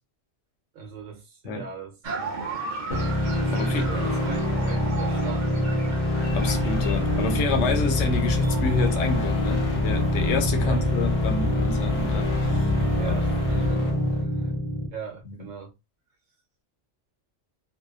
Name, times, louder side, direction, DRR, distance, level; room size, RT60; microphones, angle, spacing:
voice 1, 0.7-2.4 3.4-6.0 10.6-11.1 13.0-13.8 14.1-14.5 14.9-15.7, right 5 dB, 80° right, 1.1 m, -40 dB
sound 1, 2.0-9.3, right 4 dB, 50° right, 0.6 m, -36 dB
sound 2, 2.9-14.9, equal, 40° left, 0.5 m, -25 dB
voice 2, 3.5-3.9 6.3-12.6 13.0-13.1 13.5-14.1 15.3-15.4, left 4 dB, 70° left, 0.9 m, -28 dB
sound 3, 6.3-13.7, left 7 dB, 25° right, 0.9 m, -29 dB
2.7 x 2.0 x 2.3 m
omnidirectional pair, 1.3 m